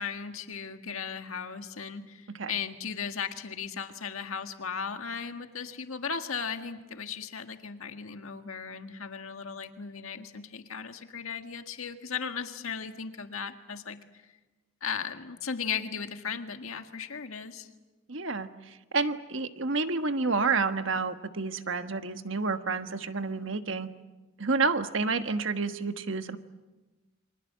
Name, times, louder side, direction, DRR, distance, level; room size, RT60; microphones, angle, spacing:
voice 1, 0.0-14.2 14.8-17.7, left 6 dB, 80° left, 7 dB, 1.7 m, -36 dB
voice 2, 18.1-23.9 24.4-26.4, right 4 dB, 65° right, 9 dB, 1.4 m, -29 dB
28.5 x 24.5 x 7.5 m, 1.2 s
head